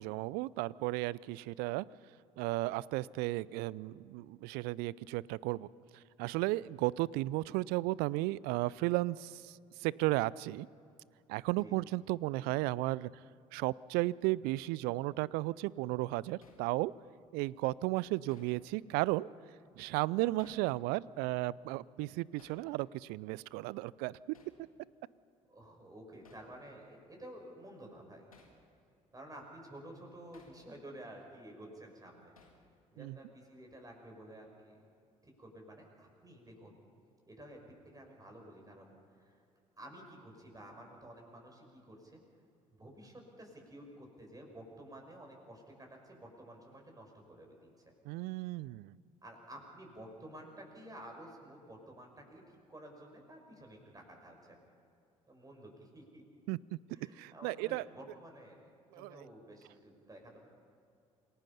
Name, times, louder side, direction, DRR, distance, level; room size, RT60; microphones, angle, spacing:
voice 1, 0.0-1.8 2.4-5.7 6.2-10.7 11.3-13.1 13.5-16.9 17.3-19.3 19.8-24.4 33.0-33.2 48.1-48.9 56.5-56.8 57.2-57.9 58.9-59.3, right 19 dB, 65° right, 23 dB, 0.5 m, -34 dB
voice 2, 11.6-11.9 20.2-20.6 25.5-28.3 29.1-32.3 32.9-34.8 35.2-36.8 37.3-39.4 39.8-42.2 42.7-47.5 49.2-54.6 55.3-56.2 56.9-58.6 58.9-60.4, right 1 dB, 20° right, 1 dB, 6.3 m, -52 dB
Hammer, 16.4-16.7 18.3-18.6 20.4-20.7 22.4-22.7 24.3-24.6 26.3-26.5 28.3-28.6 30.3-30.6 32.4-32.7, left 3 dB, 90° left, 1.9 m, -61 dB
27.5 x 18.5 x 5.6 m, 2.5 s
figure-of-eight pair, 55°, 18 cm